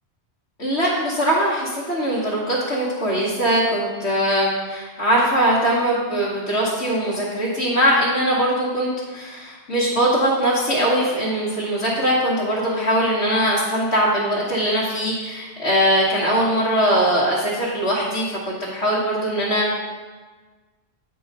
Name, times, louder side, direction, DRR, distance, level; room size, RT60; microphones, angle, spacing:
voice 1, 0.6-19.7, right 1 dB, 85° left, -8 dB, 1.7 m, -21 dB
8.5 x 3.9 x 5.2 m, 1.3 s
omnidirectional pair, 1.1 m